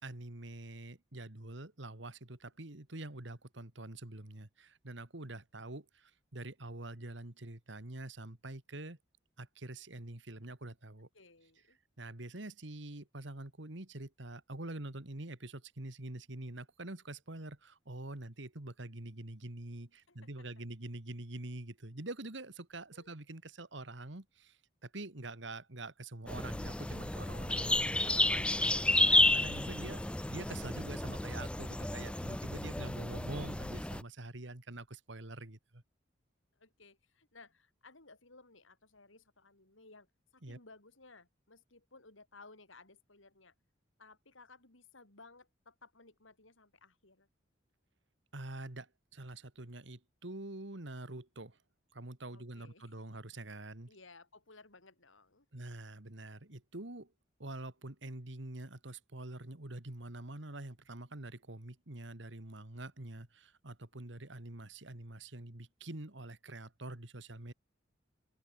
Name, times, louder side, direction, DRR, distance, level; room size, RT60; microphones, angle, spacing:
voice 1, 0.0-9.0 9.4-11.1 12.0-35.8 40.4-40.6 48.3-51.6 51.9-53.9 55.5-57.1 57.4-67.5, right 2 dB, 70° right, 2.2 m, -46 dB
voice 2, 11.1-11.8 20.1-20.3 22.9-23.1 36.6-40.1 40.3-43.5 44.0-47.3 52.3-52.9 53.9-55.5 64.0-64.3, left 3 dB, 85° left, 5.7 m, -59 dB
sound 1, 26.3-34.0, left 2 dB, 5° left, 0.4 m, -31 dB
open air
head